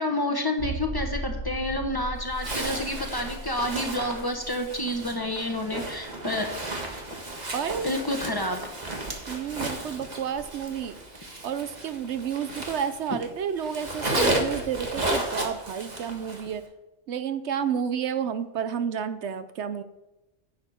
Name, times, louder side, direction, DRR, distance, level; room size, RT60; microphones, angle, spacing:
voice 1, 0.0-6.5 7.8-8.6, left 1 dB, 20° left, 2 dB, 1.2 m, -29 dB
sound 1, 0.6-6.0 6.3-6.4 6.9-7.0, right 2 dB, 15° right, 3.7 m, -37 dB
Zipper (clothing), 2.4-13.3 13.6-16.5, right 1 dB, 35° right, 1.6 m, -33 dB
voice 2, 7.5-7.9 9.3-11.0 11.4-16.6 17.1-19.8, right 8 dB, 75° right, 11 dB, 1.0 m, -30 dB
10.5 x 7.8 x 4.4 m, 0.99 s
omnidirectional pair, 1.2 m